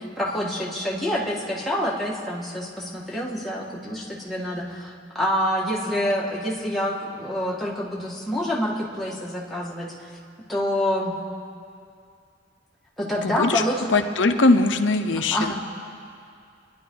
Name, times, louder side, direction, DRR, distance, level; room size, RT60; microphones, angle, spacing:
voice 1, 0.0-9.9 10.5-11.1 13.0-13.8 15.3-15.6, equal, ahead, -6 dB, 1.9 m, -27 dB
voice 2, 13.2-13.6 13.9-15.5, left 2 dB, 90° left, 8 dB, 0.8 m, -20 dB
25.0 x 10.5 x 3.9 m, 2.4 s
head